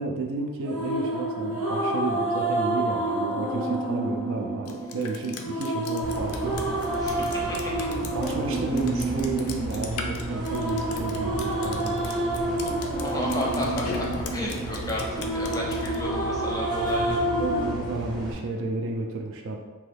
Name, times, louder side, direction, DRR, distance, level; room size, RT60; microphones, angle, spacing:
voice 1, 0.0-6.5 8.1-12.1 17.0-17.1 17.4-19.6, right 2 dB, 60° right, 2 dB, 0.4 m, -31 dB
sound 1, 0.6-17.7, right 1 dB, 80° right, 0.9 m, -29 dB
Drip, 4.7-16.0, left 6 dB, 70° left, 0.4 m, -40 dB
sound 2, 6.0-18.3, right 1 dB, 20° right, 0.7 m, -35 dB
voice 2, 7.0-7.6 13.0-17.3, left 1 dB, 15° left, -3 dB, 0.5 m, -32 dB
3.0 x 2.3 x 3.2 m, 1.3 s
head